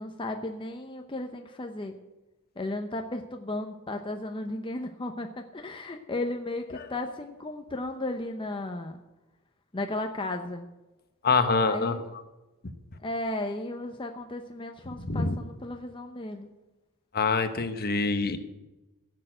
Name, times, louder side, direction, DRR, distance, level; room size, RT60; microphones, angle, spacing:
voice 1, 0.0-1.9 2.6-9.0 9.7-10.7 11.7-12.1 13.0-16.5, left 2 dB, 25° left, 4 dB, 0.7 m, -35 dB
voice 2, 11.2-12.0 14.9-15.4 17.1-18.4, left 4 dB, 45° left, 9 dB, 1.0 m, -25 dB
15.5 x 6.6 x 7.8 m, 1.0 s
head